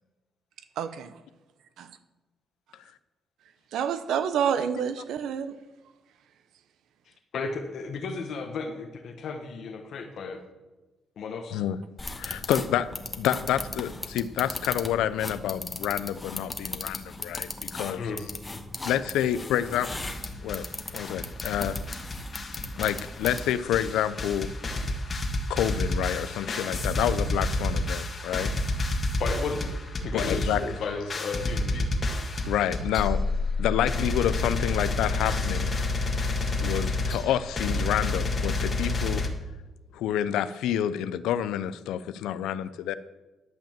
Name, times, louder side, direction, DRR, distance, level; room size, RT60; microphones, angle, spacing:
voice 1, 0.8-1.1 1.8-1.9 3.7-5.5 36.4-36.5, right 8 dB, 80° right, 12 dB, 0.8 m, -28 dB
voice 2, 7.1-10.4 11.2-11.6 18.0-18.2 28.2-28.3 29.2-29.6 30.0-32.2, left 4 dB, 65° left, 3 dB, 1.1 m, -34 dB
sound 1, 12.0-23.7, left 2 dB, 20° left, 1.1 m, -38 dB
voice 3, 12.2-12.9 13.2-18.0 18.8-19.9 20.4-20.7 20.9-21.8 22.8-24.5 25.5-28.5 30.1-30.6 32.4-33.2 33.6-35.7 36.6-39.2 39.9-42.9, left 11 dB, 90° left, 14 dB, 0.5 m, -28 dB
sound 2, 19.9-20.7 20.9-39.3, left 2 dB, 35° left, 1.6 m, -29 dB
12.0 x 5.2 x 7.3 m, 1.2 s
cardioid pair, 90°, 0 cm